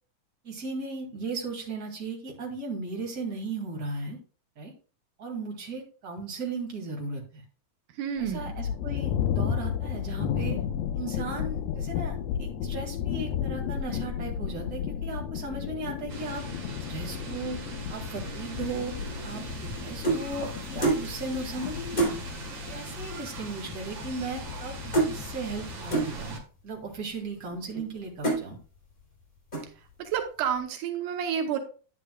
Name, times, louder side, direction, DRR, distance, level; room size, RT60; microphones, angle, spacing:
voice 1, 0.4-4.2 4.6-4.7 5.2-7.5 8.2-10.6 10.9-16.4 16.9-17.6 17.9-18.9 19.2-22.4 22.7-26.4 26.6-28.6, right 3 dB, 30° right, -1 dB, 2.2 m, -36 dB
voice 2, 8.0-8.5 30.0-31.6, right 8 dB, 85° right, 5 dB, 2.4 m, -30 dB
sound 1, 8.2-26.2, left 8 dB, 75° left, 1.7 m, -33 dB
sound 2, 16.1-26.4, right 3 dB, 50° right, 1.8 m, -41 dB
sound 3, 19.1-20.3 20.8-21.1 21.5-21.6 22.0-22.2 23.1-23.2 23.4-23.7 24.0-24.7 24.9-25.2 25.9-26.1 26.8-26.9 27.5-27.9 28.2-28.5 29.0-29.2 29.5-29.9, right 3 dB, 15° left, 3.5 m, -27 dB
10.0 x 8.6 x 2.3 m, 0.38 s
omnidirectional pair, 3.5 m